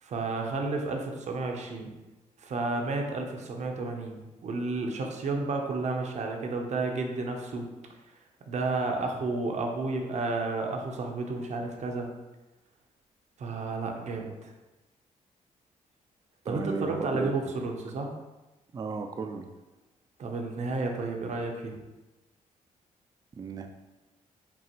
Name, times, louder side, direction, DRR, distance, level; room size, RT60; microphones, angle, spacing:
voice 1, 0.0-2.0 2.4-7.7 8.1-8.2 8.5-12.1 13.4-14.5 16.4-18.1 20.2-21.8, right 3 dB, 55° right, 2 dB, 0.7 m, -31 dB
voice 2, 16.5-17.3 18.7-19.5 23.4-23.7, right 4 dB, 30° right, 5 dB, 0.3 m, -34 dB
5.3 x 2.5 x 2.9 m, 1.1 s
cardioid pair, 90°, 14 cm